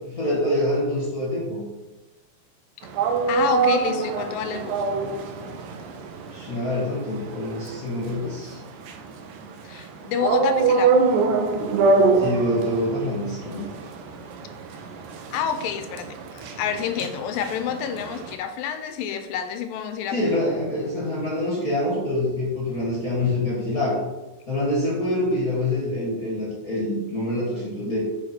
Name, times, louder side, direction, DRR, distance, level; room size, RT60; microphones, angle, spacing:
voice 1, 0.0-1.6 6.3-8.6 12.2-13.6 20.1-24.0 24.5-28.0, left 1 dB, 30° left, -7 dB, 2.1 m, -25 dB
sound 1, 2.8-18.3, right 4 dB, 80° right, 1.8 m, -25 dB
voice 2, 3.3-4.9 9.6-11.1 15.3-20.2, left 8 dB, 80° left, 8 dB, 2.3 m, -28 dB
6.5 x 5.3 x 4.5 m, 1.1 s
omnidirectional pair, 4.2 m